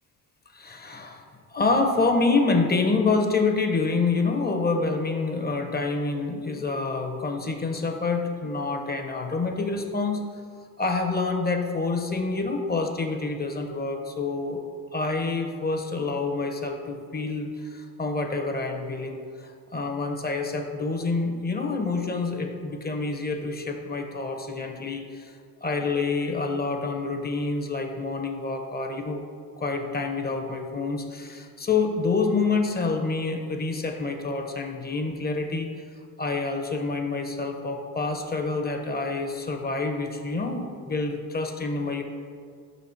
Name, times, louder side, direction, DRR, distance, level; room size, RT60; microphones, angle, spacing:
voice 1, 0.5-10.3 10.8-14.6 14.9-25.3 25.6-29.2 29.6-35.7 36.2-42.0, left 3 dB, 25° left, 4 dB, 0.9 m, -27 dB
5.8 x 4.2 x 5.7 m, 2.1 s
supercardioid pair, 75°, 37 cm